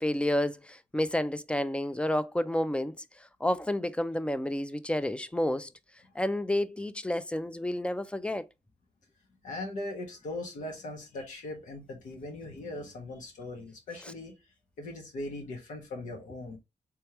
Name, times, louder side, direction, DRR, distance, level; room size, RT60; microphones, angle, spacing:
voice 1, 0.0-2.9 3.4-5.7 6.2-8.5, left 1 dB, 10° left, 0.4 m, -30 dB
voice 2, 9.4-14.3 14.8-16.6, left 2 dB, 85° left, 1.4 m, -39 dB
3.4 x 3.3 x 2.9 m
cardioid pair, 95°, 13 cm